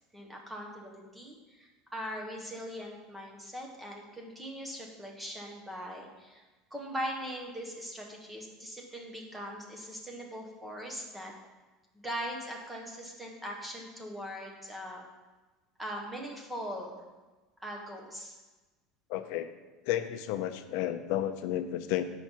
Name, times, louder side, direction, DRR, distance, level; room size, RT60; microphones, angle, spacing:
voice 1, 0.1-6.4 6.7-11.3 12.0-15.0 15.8-17.0 17.6-18.4, equal, 5° right, -1 dB, 0.9 m, -40 dB
voice 2, 19.1-19.5 19.8-22.0, left 12 dB, 55° left, 10 dB, 0.5 m, -32 dB
7.1 x 5.8 x 4.4 m, 1.2 s
cardioid pair, 180°, 0 cm